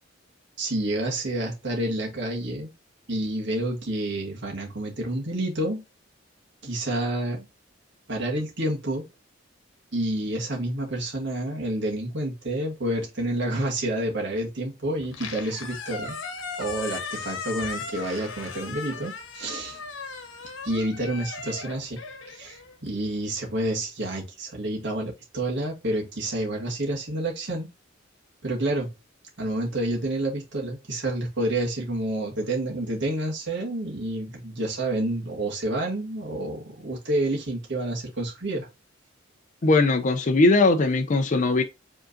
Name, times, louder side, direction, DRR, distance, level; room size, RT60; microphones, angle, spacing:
voice 1, 0.6-2.7 3.1-5.8 6.6-7.5 8.1-9.0 9.9-16.2 16.6-19.8 20.6-22.0 22.3-27.7 28.4-28.9 29.4-38.7, right 1 dB, 65° right, 1.7 m, -29 dB
Squeak, 15.0-23.2, left 5 dB, 75° left, 1.1 m, -37 dB
voice 2, 39.6-41.6, left 3 dB, 40° left, 0.5 m, -20 dB
5.2 x 3.7 x 2.5 m
head